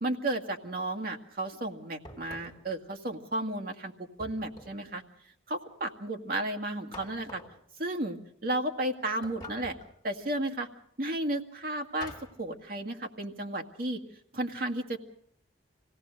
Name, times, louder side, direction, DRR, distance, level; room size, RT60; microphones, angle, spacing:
voice 1, 0.0-3.9 4.2-5.0 5.5-7.4 7.8-9.7 10.0-10.7 11.0-12.1 12.4-14.0 14.3-15.0, right 1 dB, 50° right, 3 dB, 2.0 m, -33 dB
sound 1, 2.0-2.7 4.2-4.9 6.9-7.6 9.2-10.0 12.0-12.4, left 2 dB, 20° left, 3.3 m, -46 dB
25.0 x 17.5 x 6.6 m, 0.65 s
head